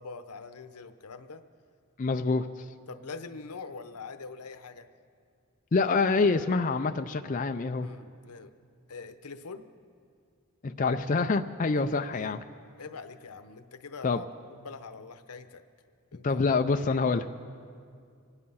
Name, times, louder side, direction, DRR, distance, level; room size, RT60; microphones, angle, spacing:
voice 1, 0.0-1.4 2.9-4.9 7.8-8.5 8.9-9.7 11.8-12.4 12.7-15.6 16.1-16.5 16.9-17.0, left 4 dB, 90° left, 10 dB, 0.8 m, -44 dB
voice 2, 2.0-2.5 5.7-7.9 10.6-12.4 14.0-14.2 16.2-17.2, left 4 dB, 35° left, 6 dB, 0.4 m, -26 dB
25.5 x 9.9 x 5.6 m, 2.2 s
head